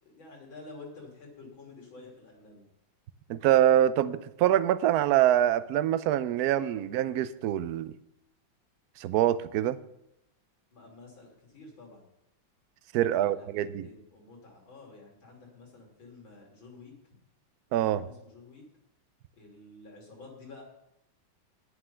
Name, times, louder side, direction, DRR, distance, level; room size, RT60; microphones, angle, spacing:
voice 1, 0.0-2.6 10.7-12.1 13.1-16.9 17.9-18.6 19.4-20.6, left 3 dB, 70° left, 0 dB, 3.7 m, -50 dB
voice 2, 3.3-7.9 9.0-9.8 12.9-13.9 17.7-18.0, right 12 dB, 75° right, 15 dB, 0.9 m, -25 dB
11.0 x 9.9 x 5.7 m, 0.84 s
omnidirectional pair, 2.2 m